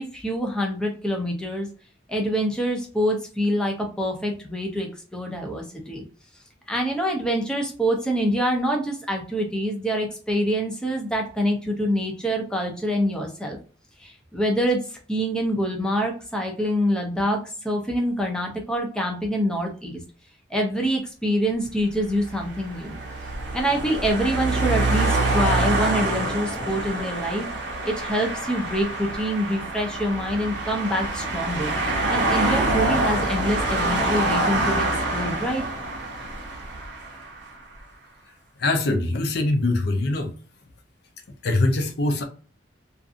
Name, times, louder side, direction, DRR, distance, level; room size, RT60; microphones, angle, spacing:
voice 1, 0.0-1.7 2.1-6.0 6.7-13.6 14.0-14.8 15.1-20.0 20.5-23.0 23.5-27.5 27.8-31.7 32.1-35.6, equal, 5° left, 0.5 m, -25 dB
sound 1, 22.1-37.5, right 2 dB, 60° right, 0.7 m, -26 dB
voice 2, 38.6-40.3 41.4-42.2, left 2 dB, 55° left, 0.5 m, -23 dB
2.6 x 2.4 x 2.4 m
head